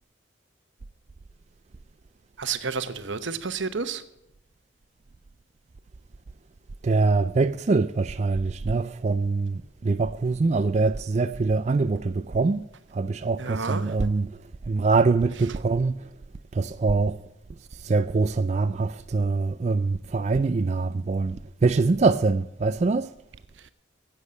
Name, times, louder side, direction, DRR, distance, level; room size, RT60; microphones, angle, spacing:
voice 1, 2.4-4.0 13.4-13.9 23.6-23.7, right 5 dB, 80° right, 0.9 m, -30 dB
voice 2, 6.8-12.6 12.9-14.3 14.6-16.1 16.5-17.2 17.7-23.1, right 3 dB, 35° right, 0.4 m, -24 dB
10.5 x 8.3 x 8.5 m
head